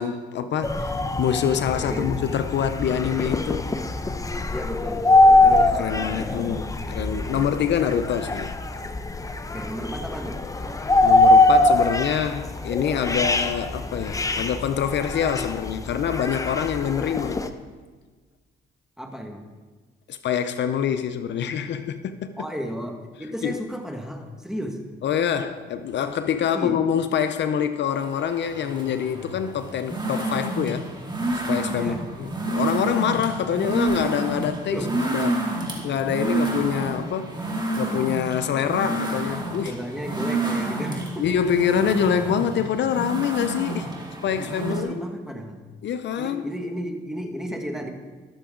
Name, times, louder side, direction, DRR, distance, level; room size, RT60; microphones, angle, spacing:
voice 1, 0.0-3.7 5.4-8.5 11.0-17.4 20.1-22.3 23.4-23.6 25.0-30.8 31.3-35.5 35.8-37.4 37.8-39.8 41.2-43.9 44.2-44.9 45.8-46.4, left 8 dB, 65° left, 10 dB, 0.6 m, -25 dB
sound 1, 0.6-17.5, left 2 dB, 15° left, 0.7 m, -22 dB
voice 2, 1.8-2.1 4.5-5.1 6.2-7.6 9.5-10.4 19.0-19.4 22.4-24.8 26.5-26.8 31.8-32.0 34.7-34.9 38.5-38.7 39.6-41.3 44.3-45.6 46.2-47.9, equal, ahead, 3 dB, 1.6 m, -33 dB
sound 2, 27.9-44.8, right 2 dB, 20° right, 2.5 m, -29 dB
20.5 x 6.9 x 3.8 m, 1.4 s
cardioid pair, 90°, 20 cm